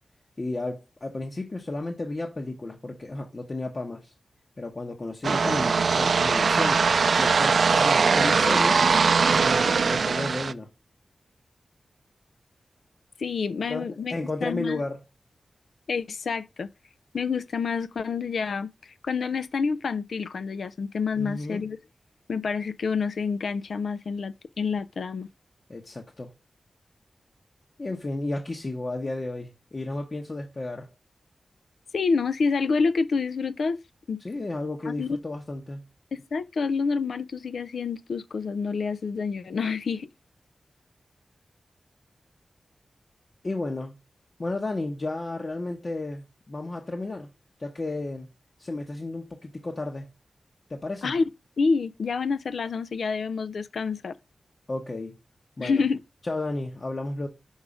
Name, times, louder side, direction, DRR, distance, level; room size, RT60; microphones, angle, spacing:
voice 1, 0.4-4.1 4.6-6.8 7.2-8.9 9.4-10.7 13.7-15.0 21.2-21.6 25.7-26.3 27.8-30.9 34.2-35.8 43.4-43.9 44.4-47.3 47.6-48.3 48.6-50.1 50.7-51.1 54.7-55.1 55.6-55.8 56.2-57.3, left 2 dB, 35° left, 0.9 m, -33 dB
sound 1, 5.2-10.5, right 5 dB, 65° right, 0.3 m, -21 dB
voice 2, 13.2-14.1 14.4-14.8 15.9-16.7 17.1-18.7 19.0-21.8 22.3-25.3 31.9-33.8 34.1-34.2 34.9-35.2 36.1-40.1 51.0-51.2 51.6-54.2 55.6-56.0, left 5 dB, 80° left, 0.5 m, -28 dB
5.5 x 4.8 x 4.9 m
wide cardioid pair, 125°, 0 cm